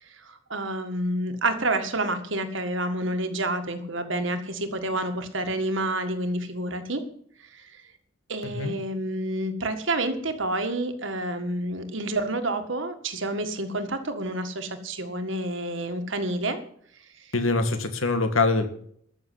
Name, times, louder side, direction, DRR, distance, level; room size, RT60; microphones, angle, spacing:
voice 1, 0.2-7.0 7.5-7.8 8.3-16.6, right 1 dB, 60° right, 7 dB, 1.8 m, -29 dB
voice 2, 8.4-8.8 17.3-18.7, left 3 dB, 75° left, 8 dB, 1.9 m, -24 dB
13.5 x 6.8 x 9.5 m, 0.63 s
head